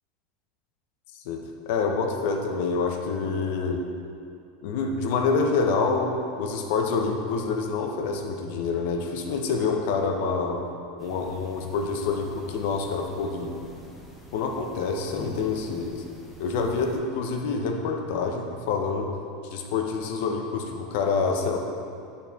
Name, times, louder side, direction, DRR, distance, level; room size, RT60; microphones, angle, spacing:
voice 1, 1.2-3.8 4.6-10.6 11.0-13.6 14.3-16.0 16.4-19.2 19.4-21.6, left 4 dB, 70° left, 3 dB, 0.6 m, -27 dB
sound 1, 11.0-17.0, left 1 dB, 5° left, 0.8 m, -46 dB
6.4 x 4.2 x 3.5 m, 2.5 s
supercardioid pair, 130°, 0 cm